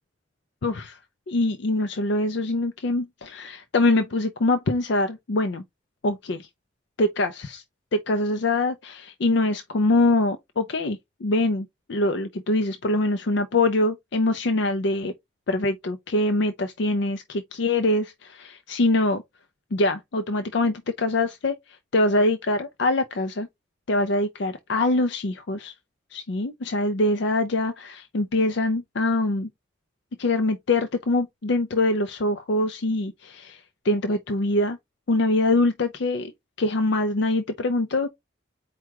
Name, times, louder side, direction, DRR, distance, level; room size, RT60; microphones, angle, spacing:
voice 1, 0.6-1.0 1.3-5.6 6.0-6.5 7.0-7.6 7.9-15.1 15.5-19.2 19.7-21.6 21.9-23.5 23.9-25.7 26.1-29.5 30.2-34.8 35.1-36.3 36.6-38.1, left 2 dB, 60° left, 0.5 m, -24 dB
4.6 x 2.3 x 4.6 m
head